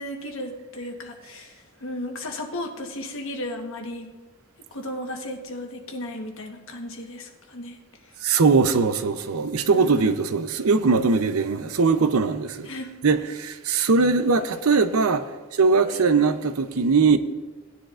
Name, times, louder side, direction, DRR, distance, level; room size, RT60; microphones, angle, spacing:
voice 1, 0.0-4.1 4.7-7.8 8.0-8.2 9.7-10.1 12.6-12.9 15.9-16.0, left 1 dB, 65° left, 1.3 m, -35 dB
voice 2, 8.2-12.7 13.0-17.2, right 4 dB, 80° right, 0.7 m, -21 dB
17.5 x 10.0 x 2.5 m
head